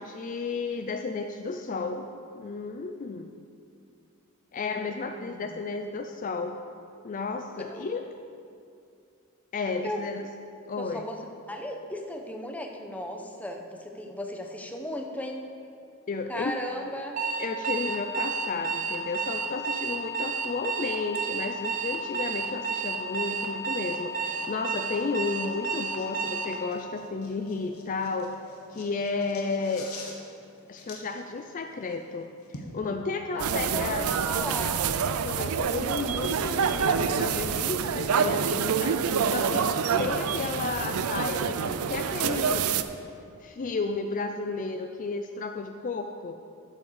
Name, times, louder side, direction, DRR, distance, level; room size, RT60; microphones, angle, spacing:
voice 1, 0.0-2.1 2.3-3.3 4.5-6.6 7.0-8.1 9.5-10.2 10.7-11.1 16.1-16.9 17.4-28.4 28.7-29.9 30.7-34.1 35.2-39.7 40.0-42.7 43.4-46.4, left 4 dB, 35° left, 6 dB, 0.3 m, -33 dB
voice 2, 4.6-5.6 7.7-7.8 9.8-10.1 10.8-11.2 11.5-15.5 16.3-17.2 33.4-34.8, left 1 dB, 5° left, 3 dB, 0.8 m, -36 dB
Alarm, 17.2-26.6, right 5 dB, 35° right, 0.8 m, -31 dB
sound 1, 21.1-32.7, left 3 dB, 80° left, 1.4 m, -49 dB
sound 2, 33.4-42.8, right 6 dB, 85° right, 0.5 m, -27 dB
12.5 x 7.1 x 4.8 m, 2.5 s
head